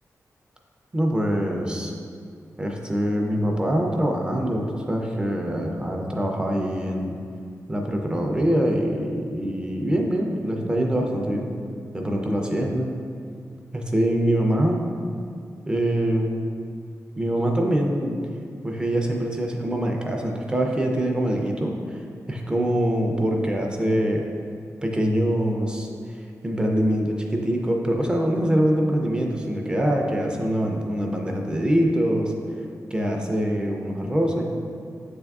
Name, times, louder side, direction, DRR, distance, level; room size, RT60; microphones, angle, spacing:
voice 1, 0.9-1.9 2.6-7.2 7.7-11.5 11.9-12.9 13.7-14.8 15.7-16.3 17.2-18.1 18.6-21.7 22.3-24.2 24.8-25.9 26.4-32.3 32.9-34.4, equal, 15° right, 1 dB, 0.3 m, -24 dB
6.5 x 3.4 x 2.3 m, 2.3 s
wide cardioid pair, 150°, 6 cm